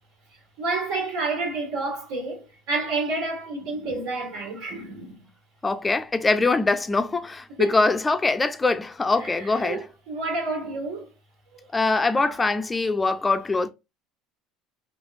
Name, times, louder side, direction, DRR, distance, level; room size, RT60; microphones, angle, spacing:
voice 1, 0.6-5.2 7.6-7.8 9.2-11.1 11.6-11.7 12.2-12.5, right 3 dB, 75° right, 1.7 m, -30 dB
voice 2, 5.6-9.8 11.7-13.7, left 3 dB, 20° left, 0.4 m, -23 dB
3.3 x 2.9 x 2.5 m
hypercardioid pair, 80°, 0 cm